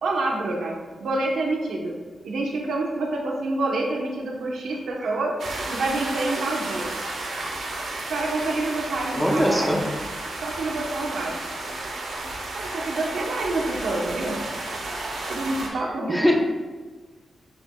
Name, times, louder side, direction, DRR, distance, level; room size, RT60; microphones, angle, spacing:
voice 1, 0.0-2.0 2.2-5.4 5.7-6.9 8.1-9.7 10.4-11.5 12.5-14.4 15.3-16.4, right 2 dB, 90° right, 0 dB, 1.1 m, -27 dB
sound 1, 5.4-15.7, right 2 dB, 75° right, 1.6 m, -32 dB
voice 2, 9.2-9.8 16.1-16.4, equal, ahead, -1 dB, 0.9 m, -21 dB
10.5 x 5.1 x 2.4 m, 1.3 s
wide cardioid pair, 125°, 0 cm